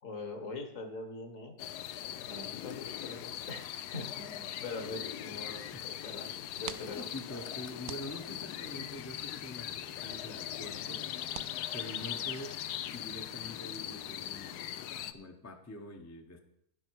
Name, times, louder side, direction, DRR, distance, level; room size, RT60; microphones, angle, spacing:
voice 1, 0.0-1.6 2.2-6.3 6.6-7.1, left 3 dB, 55° left, 6 dB, 1.8 m, -43 dB
sound 1, 1.6-15.1, left 11 dB, 80° left, 1.2 m, -40 dB
sound 2, 6.3-12.6, right 10 dB, 65° right, 0.9 m, -51 dB
voice 2, 6.8-11.1 11.7-12.6 12.9-16.4, left 1 dB, 15° left, 4 dB, 0.7 m, -45 dB
11.5 x 10.5 x 4.7 m, 0.77 s
omnidirectional pair, 1.7 m